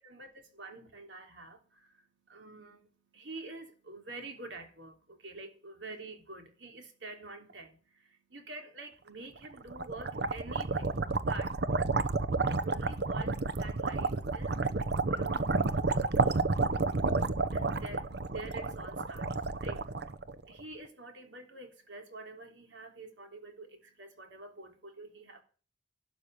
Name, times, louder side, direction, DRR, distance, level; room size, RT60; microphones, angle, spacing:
voice 1, 0.0-25.4, right 2 dB, 85° right, 3.4 m, -48 dB
sound 1, 9.5-20.6, right 3 dB, 65° right, 0.9 m, -31 dB
12.0 x 8.3 x 9.1 m
head